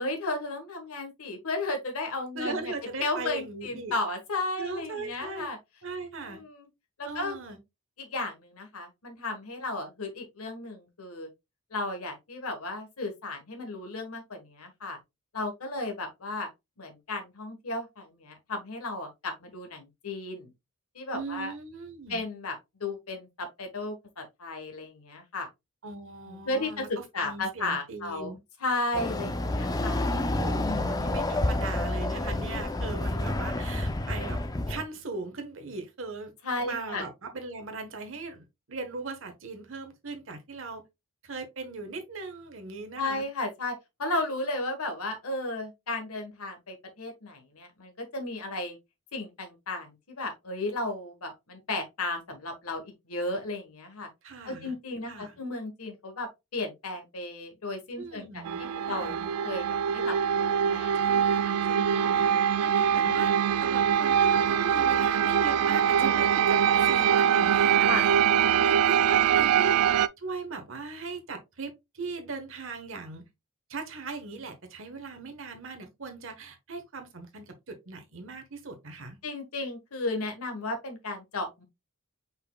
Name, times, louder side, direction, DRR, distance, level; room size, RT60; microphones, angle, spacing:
voice 1, 0.0-2.7 3.0-5.6 6.1-6.7 7.0-7.3 8.0-11.3 11.7-15.0 15.3-16.5 16.8-20.5 20.9-21.5 22.1-25.5 26.3-30.1 30.6-30.9 36.4-37.1 43.0-48.8 49.1-54.1 54.4-59.1 59.4-59.7 59.9-62.4 63.1-63.3 67.9-68.0 79.2-81.6, left 2 dB, 80° left, 1.3 m, -34 dB
voice 2, 2.3-3.9 4.6-5.5 5.8-6.4 7.1-7.6 21.1-22.2 25.8-28.4 30.1-34.4 34.7-36.3 36.6-40.8 41.2-43.2 54.2-54.7 55.0-55.4 58.0-59.3 60.9-62.1 62.6-63.3 63.6-69.8 70.2-73.2 73.7-79.2, right 3 dB, 60° right, 1.2 m, -39 dB
Chatter / Car passing by / Motorcycle, 28.9-34.8, left 1 dB, 15° left, 0.4 m, -29 dB
sound 1, 58.4-70.1, right 8 dB, 85° right, 0.3 m, -23 dB
5.2 x 4.2 x 2.2 m
head